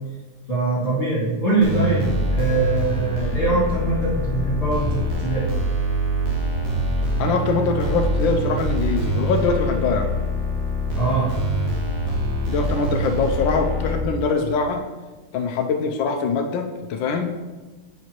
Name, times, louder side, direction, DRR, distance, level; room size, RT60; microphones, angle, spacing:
voice 1, 0.5-5.4 11.0-11.3, right 3 dB, 30° left, -9 dB, 2.2 m, -22 dB
sound 1, 1.6-14.0, equal, 70° right, 1.9 m, -24 dB
voice 2, 7.2-10.1 12.5-14.9 15.3-17.4, left 4 dB, 75° left, 3 dB, 1.3 m, -23 dB
8.5 x 6.0 x 3.0 m, 1.2 s
omnidirectional pair, 2.2 m